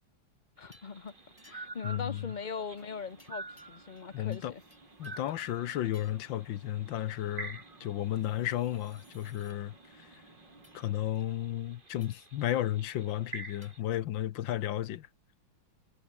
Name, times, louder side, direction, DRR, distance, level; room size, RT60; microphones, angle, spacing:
voice 1, 0.6-1.1 1.4-4.6, left 5 dB, 30° left, 0.8 m, -40 dB
sound 1, 0.6-13.8, right 3 dB, 25° right, 2.6 m, -49 dB
sound 2, 0.7-1.0 1.4-1.9 3.2-4.1 4.3-5.3 5.9-6.3 8.0-9.6 10.6-10.8 12.0-12.3 13.6-13.8, left 1 dB, 5° left, 1.9 m, -62 dB
sound 3, 0.8-11.1, right 2 dB, 60° right, 7.2 m, -59 dB
voice 2, 1.8-2.3 4.1-4.5 5.0-10.1 10.7-15.1, left 12 dB, 70° left, 1.5 m, -33 dB
omnidirectional pair, 2.2 m